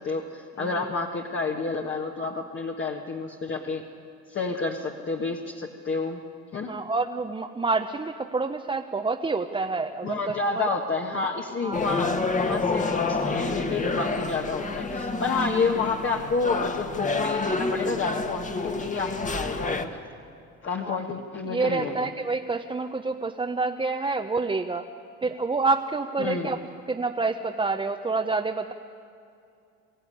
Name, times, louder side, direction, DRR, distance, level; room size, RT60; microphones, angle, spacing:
voice 1, 0.0-3.8 4.3-6.2 6.5-6.7 10.0-20.0 20.6-22.1 26.2-26.6, left 4 dB, 40° left, 1 dB, 1.6 m, -29 dB
voice 2, 6.6-10.7 11.6-11.8 20.8-21.0 21.5-24.9 25.2-26.6 26.9-28.7, right 3 dB, 20° right, 4 dB, 0.8 m, -28 dB
sound 1, 11.7-19.8, left 3 dB, 25° left, 1.5 m, -28 dB
23.0 x 15.5 x 9.9 m, 2.6 s
cardioid pair, 105°, 29 cm